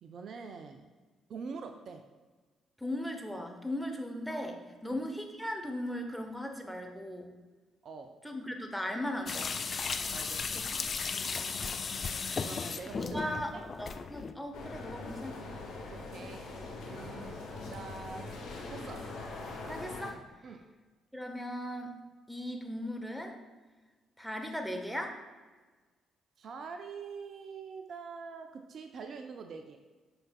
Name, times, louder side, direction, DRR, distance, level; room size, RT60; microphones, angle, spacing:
voice 1, 0.0-0.9 1.3-2.0 4.8-5.0 7.8-8.1 10.1-10.6 12.4-13.2 13.5-13.6 15.9-16.4 16.8-17.3 17.7-18.3 18.7-19.0 20.4-20.7 26.4-29.8, right 5 dB, 50° right, 5 dB, 0.4 m, -44 dB
voice 2, 2.8-7.3 8.2-9.5 10.5-10.6 11.1-11.5 13.0-13.5 13.8-15.5 17.1-17.3 19.7-20.2 21.1-22.0 22.3-23.4 24.2-25.2, equal, ahead, 2 dB, 1.0 m, -38 dB
sound 1, 9.3-14.3, left 5 dB, 40° left, 0.3 m, -35 dB
sound 2, 14.5-20.1, left 3 dB, 60° left, 0.9 m, -42 dB
7.7 x 5.8 x 2.3 m, 1.3 s
figure-of-eight pair, 45°, 0 cm